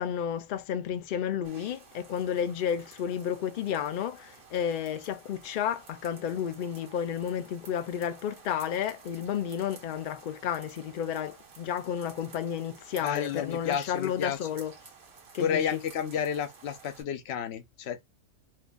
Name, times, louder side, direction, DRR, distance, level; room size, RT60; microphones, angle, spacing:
voice 1, 0.0-14.7 15.3-15.6, left 8 dB, 90° left, 0.4 m, -32 dB
sound 1, 1.4-17.0, right 5 dB, 75° right, 1.6 m, -53 dB
voice 2, 13.0-14.4 15.4-18.0, left 8 dB, 65° left, 0.7 m, -31 dB
4.3 x 2.5 x 2.2 m
omnidirectional pair, 1.4 m